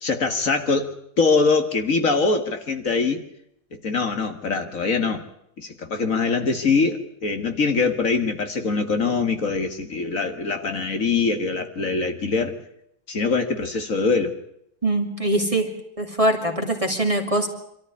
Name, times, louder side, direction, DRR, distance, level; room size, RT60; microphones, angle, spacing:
voice 1, 0.0-3.2 3.8-5.2 5.6-12.6 13.1-14.4, left 4 dB, 55° left, 7 dB, 2.1 m, -23 dB
voice 2, 14.8-15.7 16.0-17.5, right 1 dB, 20° right, 3 dB, 2.6 m, -22 dB
26.0 x 14.0 x 9.7 m, 0.76 s
omnidirectional pair, 1.7 m